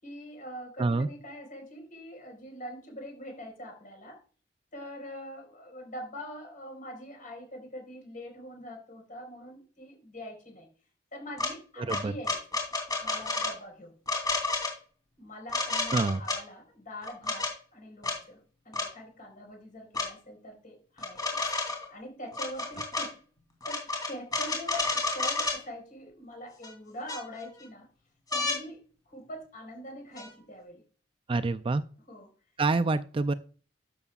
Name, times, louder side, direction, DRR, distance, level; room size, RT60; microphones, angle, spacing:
voice 1, 0.0-4.2 4.7-10.7 11.1-12.6 13.0-13.9 15.2-21.2 21.9-23.1 23.7-27.9 28.3-30.8 32.1-32.3, equal, 50° left, 2 dB, 4.3 m, -43 dB
sound 1, 11.4-11.5 11.9-13.5 14.1-14.7 15.5-16.4 17.0-17.5 18.0-18.2 18.7-18.9 19.9-20.1 21.0-21.9 22.3-23.1 23.6-25.6 26.6-26.7 27.1-27.6 28.3-28.6 30.2-30.3, left 2 dB, 20° left, 3.0 m, -30 dB
voice 2, 11.8-12.1 15.9-16.2 31.3-31.8 32.6-33.3, right 3 dB, 30° right, 12 dB, 0.4 m, -27 dB
12.0 x 6.9 x 2.4 m, 0.39 s
head